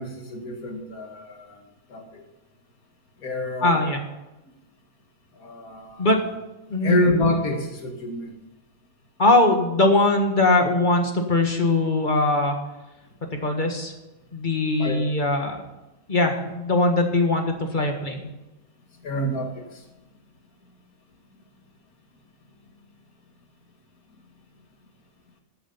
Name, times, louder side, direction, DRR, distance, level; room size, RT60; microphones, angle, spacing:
voice 1, 0.0-1.6 1.9-2.2 3.2-3.8 5.3-6.1 6.7-8.3 14.8-15.1 19.0-19.9, left 1 dB, 90° left, 3 dB, 2.3 m, -27 dB
voice 2, 3.6-4.0 6.0-6.2 6.7-7.0 9.2-12.6 13.3-13.9 14.3-15.6 16.1-18.3, left 2 dB, 35° left, 4 dB, 1.7 m, -21 dB
14.5 x 8.3 x 5.6 m, 1.0 s
omnidirectional pair, 1.5 m